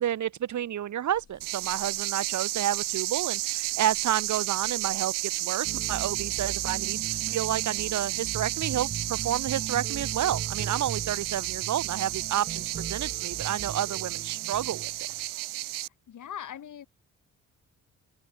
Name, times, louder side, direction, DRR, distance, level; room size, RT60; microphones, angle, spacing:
voice 1, 0.0-14.9, right 10 dB, 65° right, 1.1 m, -30 dB
sound 1, 1.1-13.1, left 7 dB, 50° left, 7.0 m, -59 dB
sound 2, 1.4-15.9, right 18 dB, 90° right, 0.6 m, -32 dB
sound 3, 5.6-15.2, right 6 dB, 40° right, 1.5 m, -39 dB
voice 2, 16.1-16.9, left 9 dB, 70° left, 3.9 m, -40 dB
cardioid pair, 80°, 32 cm